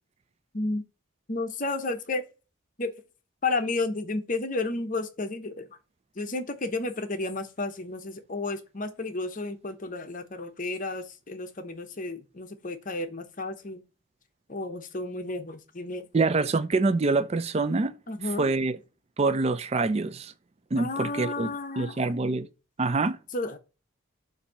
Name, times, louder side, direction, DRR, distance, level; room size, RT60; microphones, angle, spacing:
voice 1, 1.3-2.2 2.8-2.9 3.4-5.7 6.2-13.8 14.5-16.0 18.1-18.5 20.8-22.1 23.3-23.6, left 2 dB, 40° left, 0.8 m, -32 dB
voice 2, 16.1-17.9 18.4-18.8 19.2-20.3 20.7-22.5 22.8-23.2, right 3 dB, 30° right, 0.4 m, -25 dB
7.1 x 2.7 x 5.4 m
head